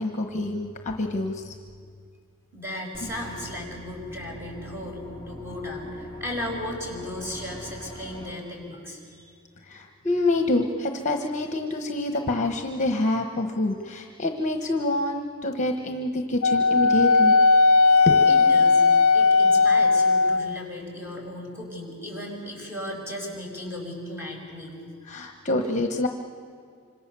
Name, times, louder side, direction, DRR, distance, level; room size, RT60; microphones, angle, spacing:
voice 1, 0.0-1.5 3.0-3.1 9.7-17.3 18.1-18.2 25.1-26.1, left 2 dB, 35° left, 5 dB, 1.2 m, -26 dB
voice 2, 2.5-9.0 9.3-9.4 18.3-18.8 19.1-24.8, left 1 dB, 10° right, -1 dB, 5.6 m, -36 dB
sound 1, 2.9-8.3, equal, 20° left, 4.6 m, -42 dB
Wind instrument woodwind instrument, 16.4-20.6, left 4 dB, 75° left, 0.5 m, -17 dB
26.5 x 26.0 x 6.9 m, 2.3 s
head